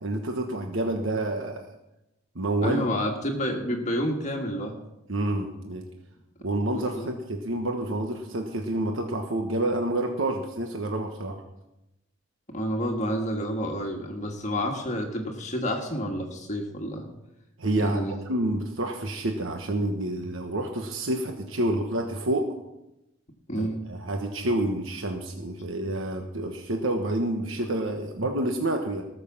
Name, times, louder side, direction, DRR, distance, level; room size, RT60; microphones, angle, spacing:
voice 1, 0.0-1.7 2.3-2.8 5.1-5.8 6.4-11.4 17.6-22.5 23.5-29.0, right 1 dB, 70° right, 3 dB, 1.3 m, -28 dB
voice 2, 2.6-4.8 6.7-7.1 12.5-17.1 17.8-18.1 23.5-23.8, equal, 35° left, 1 dB, 1.6 m, -29 dB
18.5 x 6.7 x 7.2 m, 0.93 s
head